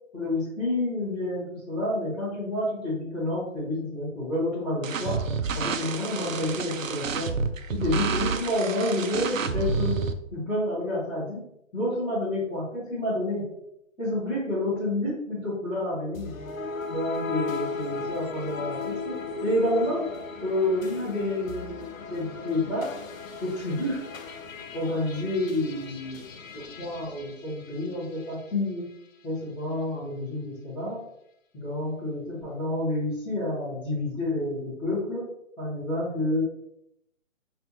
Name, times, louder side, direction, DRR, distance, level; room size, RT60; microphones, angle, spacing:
voice 1, 0.1-5.2 5.5-7.3 7.7-10.0 10.3-11.4 11.7-13.5 14.0-16.4 16.9-20.1 20.4-23.0 23.4-24.0 24.7-26.3 26.5-28.9 29.2-31.0 31.5-35.2 35.6-36.4, left 1 dB, 5° left, -13 dB, 0.8 m, -29 dB
sound 1, 4.8-10.1, right 5 dB, 80° right, 0.5 m, -29 dB
sound 2, 16.1-28.5, left 4 dB, 80° left, 0.6 m, -37 dB
5.4 x 2.4 x 2.7 m, 0.78 s
figure-of-eight pair, 140°, 39 cm